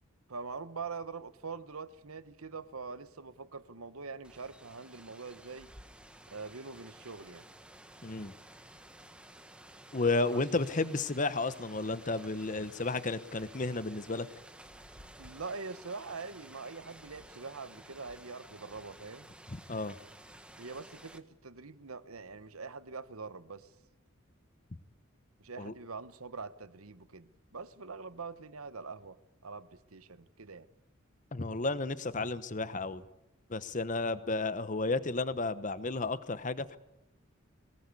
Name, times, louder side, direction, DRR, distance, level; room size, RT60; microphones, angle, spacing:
voice 1, 0.3-5.7 6.3-7.5 10.3-10.4 15.0-19.3 20.6-23.7 25.4-29.2 29.4-30.7, right 4 dB, 85° right, 1.2 m, -44 dB
Rain, 4.2-21.2, right 1 dB, 5° right, 1.3 m, -53 dB
voice 2, 8.0-8.3 9.9-14.3 19.7-20.0 25.6-25.7 31.3-33.0 33.5-36.8, left 3 dB, 35° left, 1.0 m, -32 dB
22.0 x 19.0 x 8.4 m
head